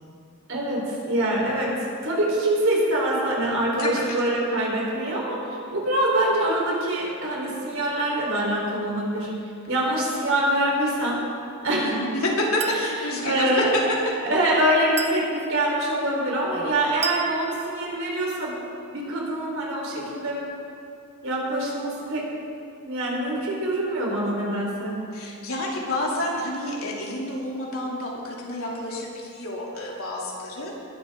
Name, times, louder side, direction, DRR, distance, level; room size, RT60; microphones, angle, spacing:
voice 1, 0.5-9.3 9.7-11.2 11.6-12.0 12.7-12.8 13.2-13.7 14.2-18.6 18.9-20.4 21.2-22.3 22.8-25.0, right 1 dB, 65° right, -3 dB, 4.0 m, -24 dB
voice 2, 3.8-4.1 11.7-13.6 25.1-30.8, left 1 dB, 75° left, -3 dB, 2.8 m, -29 dB
Chink clink, 12.6-12.9 15.0-15.3 17.0-17.3, right 7 dB, 30° right, 0.8 m, -31 dB
20.5 x 12.0 x 3.7 m, 2.6 s
head